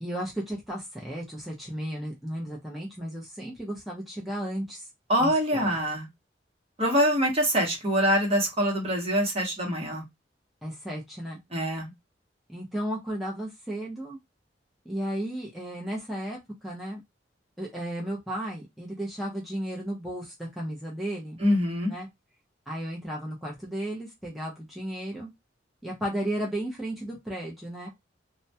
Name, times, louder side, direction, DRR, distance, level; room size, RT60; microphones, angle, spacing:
voice 1, 0.0-4.8 5.2-5.8 10.6-11.4 12.5-14.2 14.9-17.0 17.6-21.4 21.9-22.1 22.7-25.3 25.8-27.9, right 1 dB, ahead, 0.5 m, -34 dB
voice 2, 5.1-6.1 6.8-10.0 11.5-11.9 21.4-21.9, equal, 35° right, 0.9 m, -24 dB
2.2 x 2.1 x 2.7 m
head